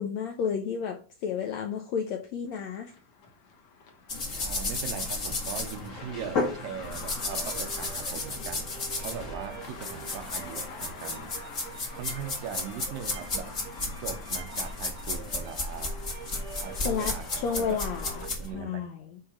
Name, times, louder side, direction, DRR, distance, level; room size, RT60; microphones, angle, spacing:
voice 1, 0.0-2.9 16.8-18.1 18.5-18.9, left 7 dB, 75° left, 1.6 m, -31 dB
sound 1, 2.5-18.3, left 5 dB, 55° left, 1.9 m, -47 dB
sound 2, 4.1-18.5, left 3 dB, 35° left, 1.4 m, -34 dB
voice 2, 4.4-11.4 11.9-13.6 14.0-16.0 16.6-17.8 18.3-18.9, right 8 dB, 85° right, 2.7 m, -40 dB
sound 3, 7.2-18.5, right 7 dB, 65° right, 2.1 m, -47 dB
9.7 x 3.8 x 5.8 m
omnidirectional pair, 4.0 m